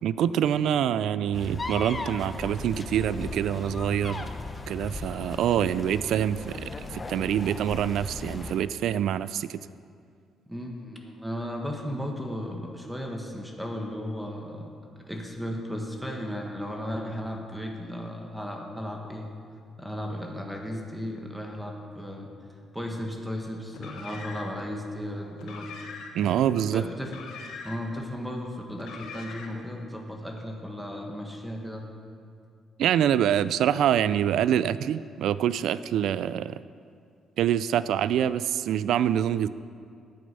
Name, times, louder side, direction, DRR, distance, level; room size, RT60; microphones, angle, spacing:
voice 1, 0.0-4.3 4.7-9.6 26.1-26.8 32.8-36.6 37.4-39.5, right 10 dB, 80° right, 16 dB, 0.3 m, -25 dB
sound 1, 1.3-8.6, left 2 dB, 25° left, 0.9 m, -37 dB
voice 2, 10.5-19.3 19.8-22.3 22.7-25.7 26.7-27.2 27.6-31.8, equal, 5° right, 1 dB, 1.6 m, -35 dB
Car, 23.7-24.7 25.3-26.3 27.0-28.0 28.7-29.7, left 5 dB, 85° left, 1.3 m, -42 dB
10.0 x 8.6 x 6.8 m, 2.3 s
cardioid pair, 90°, 0 cm